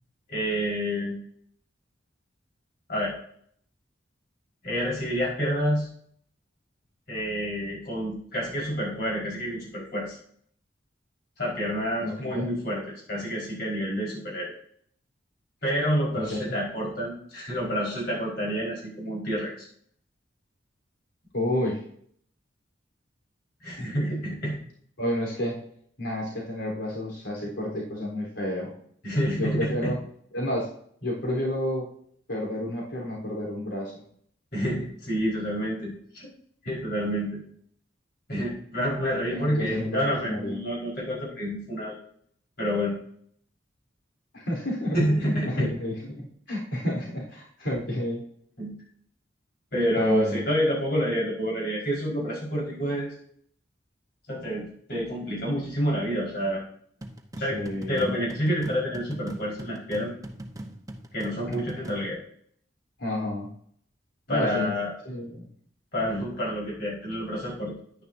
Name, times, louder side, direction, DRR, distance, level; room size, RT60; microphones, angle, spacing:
voice 1, 0.3-1.2 2.9-3.1 4.6-5.9 7.1-10.1 11.4-12.8 13.1-14.5 15.6-19.5 23.6-24.6 29.0-29.9 34.5-35.9 36.6-37.4 38.3-42.0 42.6-42.9 44.9-45.7 48.6-48.7 49.7-53.1 54.3-56.6 57.4-57.6 57.9-60.1 61.1-62.2 64.3-64.9 65.9-67.7, equal, 60° left, -4 dB, 4.7 m, -28 dB
voice 2, 12.0-12.5 16.3-16.6 21.3-21.8 23.8-23.9 25.0-25.6 26.0-28.7 29.4-30.0 30.3-30.7 31.0-31.9 32.3-34.0 39.3-40.6 44.3-45.9 46.5-48.2 49.9-50.4 57.5-58.2 61.5-61.6 63.0-63.5 64.3-64.7 65.0-65.5, left 1 dB, 90° left, -3 dB, 3.8 m, -30 dB
sound 1, 57.0-62.1, right 1 dB, 20° right, 1.0 m, -41 dB
10.5 x 10.0 x 2.7 m, 0.63 s
head